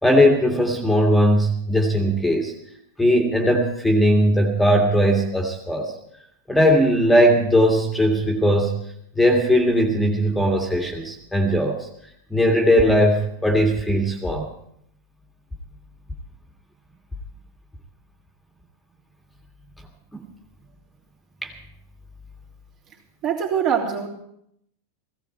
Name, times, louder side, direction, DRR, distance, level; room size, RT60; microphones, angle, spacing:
voice 1, 0.0-2.5 3.0-5.9 6.5-8.7 9.2-11.9 12.3-14.5 20.1-20.2 21.4-21.5, equal, 5° left, 2 dB, 2.0 m, -19 dB
voice 2, 23.2-24.1, right 8 dB, 35° right, -1 dB, 3.5 m, -23 dB
17.5 x 16.5 x 4.5 m, 0.73 s
figure-of-eight pair, 90°, 0 cm